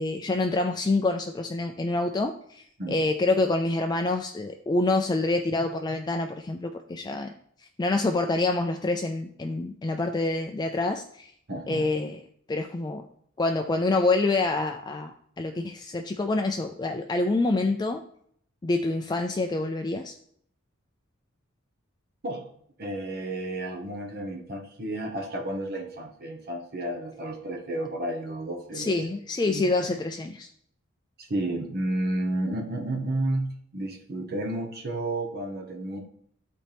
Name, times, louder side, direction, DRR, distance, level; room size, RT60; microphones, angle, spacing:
voice 1, 0.0-7.3 7.6-11.3 11.7-12.2 12.5-13.0 13.4-15.1 15.4-18.0 18.6-20.2 28.7-30.5, left 2 dB, 20° left, 5 dB, 0.4 m, -27 dB
voice 2, 11.5-11.9 22.2-22.5 22.8-29.1 29.5-30.0 31.2-36.0, right 1 dB, 50° right, 1 dB, 1.1 m, -32 dB
12.5 x 4.3 x 3.4 m, 0.67 s
head